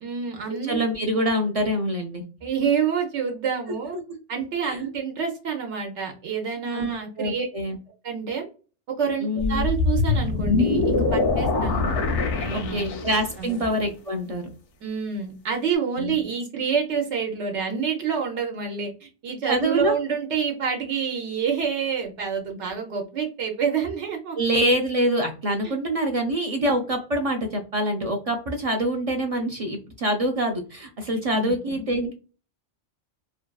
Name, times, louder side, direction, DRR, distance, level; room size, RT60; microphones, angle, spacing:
voice 1, 0.0-0.8 2.4-4.0 4.3-7.5 8.0-8.5 9.0-11.8 12.4-12.8 13.4-13.6 14.8-24.4 25.6-25.8 31.3-31.8, right 6 dB, 85° right, 2 dB, 0.9 m, -28 dB
voice 2, 0.7-2.2 4.6-4.8 6.7-7.8 9.2-9.7 12.5-14.4 16.0-16.2 19.5-19.9 24.4-32.1, right 1 dB, 60° right, 3 dB, 0.4 m, -25 dB
sound 1, 9.4-13.4, left 3 dB, 85° left, 0.9 m, -23 dB
2.7 x 2.3 x 2.2 m, 0.34 s
omnidirectional pair, 1.1 m